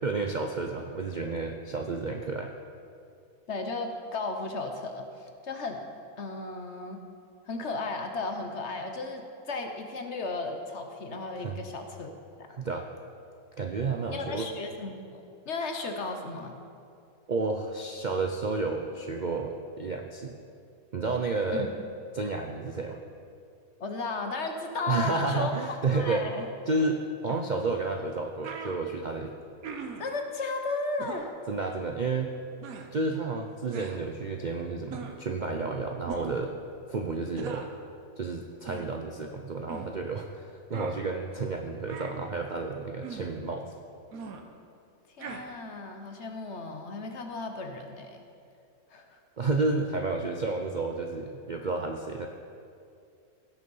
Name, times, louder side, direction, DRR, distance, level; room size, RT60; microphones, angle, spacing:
voice 1, 0.0-2.5 11.4-11.6 12.5-12.9 13.6-14.5 17.3-20.4 20.9-21.7 22.1-23.0 24.9-26.3 26.7-29.3 31.5-32.4 32.9-36.5 36.9-37.6 38.2-43.7 49.4-52.3, right 3 dB, 50° right, 3 dB, 0.5 m, -31 dB
voice 2, 3.5-5.9 6.2-7.0 7.4-12.1 12.4-12.5 14.1-16.6 21.5-21.7 23.8-25.5 25.9-26.5 30.0-31.3 45.2-48.2 48.9-49.2, left 3 dB, 55° left, 4 dB, 1.2 m, -35 dB
sound 1, 27.3-27.5 28.1-28.2 28.4-28.8 29.6-30.1 31.0-31.3 32.6-32.9 33.7-34.0 34.9-35.2 36.1-36.4 37.4-37.7 38.7-38.9 39.7-39.9 40.7-41.0 41.9-42.2 43.0-43.3 44.1-44.4 45.2-45.4, right 5 dB, 75° right, 1.4 m, -40 dB
16.5 x 6.7 x 5.4 m, 2.4 s
omnidirectional pair, 1.5 m